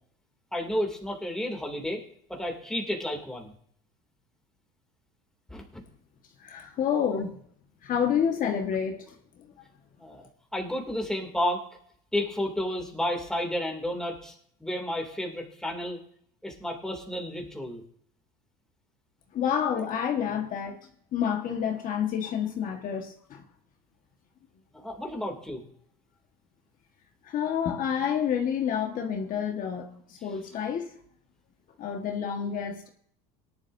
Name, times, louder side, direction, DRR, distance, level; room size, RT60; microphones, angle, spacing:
voice 1, 0.5-2.0 2.3-3.5 5.5-5.8 10.0-11.6 12.1-14.3 14.6-16.0 16.4-17.8 24.7-25.6, left 1 dB, 5° left, 0 dB, 2.7 m, -31 dB
voice 2, 6.4-7.3 7.8-9.2 19.3-23.4 27.2-30.9 31.8-32.9, left 8 dB, 45° left, 3 dB, 1.5 m, -29 dB
18.5 x 11.0 x 2.7 m, 0.64 s
supercardioid pair, 120°, 19 cm